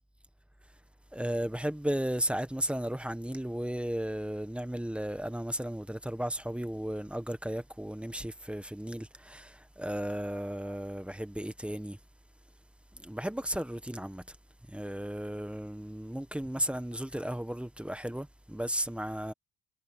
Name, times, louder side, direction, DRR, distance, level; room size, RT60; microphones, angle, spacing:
voice 1, 1.1-12.0 12.9-14.4 14.7-19.3, equal, 5° right, 1.4 m, -35 dB
cardioid pair, 90°, 30 cm